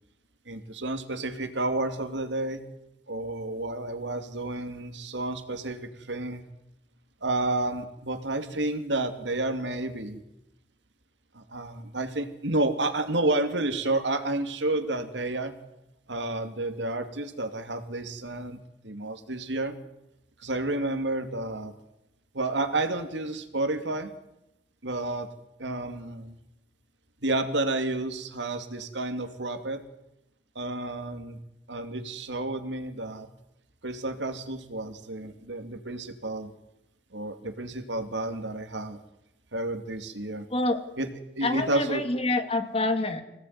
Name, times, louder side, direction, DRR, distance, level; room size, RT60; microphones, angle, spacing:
voice 1, 0.5-2.6 3.1-6.4 7.2-10.2 11.3-15.5 16.1-19.8 20.4-21.7 22.3-24.1 24.8-25.3 25.6-26.4 27.2-29.8 30.5-31.4 31.7-33.3 33.8-36.5 37.1-39.0 39.5-40.5 41.0-42.0, right 2 dB, 85° right, 8 dB, 2.7 m, -30 dB
voice 2, 40.5-40.8 41.4-43.2, left 2 dB, 35° left, 8 dB, 2.4 m, -27 dB
25.5 x 18.0 x 9.6 m, 0.89 s
head